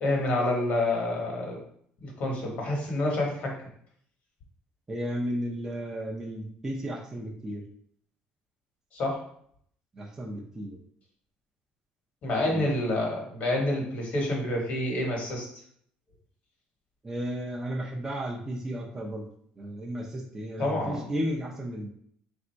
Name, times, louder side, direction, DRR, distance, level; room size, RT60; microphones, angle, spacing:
voice 1, 0.0-1.6 2.0-3.5 8.9-9.2 12.2-15.4 20.6-21.1, left 1 dB, 50° left, 0 dB, 1.3 m, -28 dB
voice 2, 4.9-7.6 10.0-10.8 12.5-12.7 17.0-19.2 19.6-21.9, equal, 15° right, -2 dB, 0.7 m, -34 dB
3.5 x 2.7 x 4.4 m, 0.65 s
cardioid pair, 145°, 3 cm